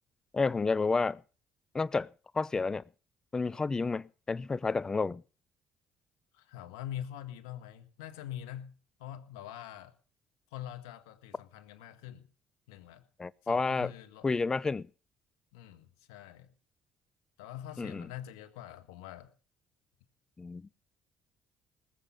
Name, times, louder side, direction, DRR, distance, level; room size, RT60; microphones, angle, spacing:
voice 1, 0.3-1.2 1.7-2.8 3.3-5.2 13.2-13.9 14.2-14.9 17.8-18.1 20.4-20.7, left 4 dB, 25° left, 0.8 m, -30 dB
voice 2, 6.3-8.7 9.0-9.9 10.5-12.3 12.7-13.0 13.4-14.3 15.5-16.5 17.4-19.3, left 11 dB, 90° left, 1.5 m, -44 dB
20.0 x 7.6 x 6.8 m
supercardioid pair, 65°, 2 cm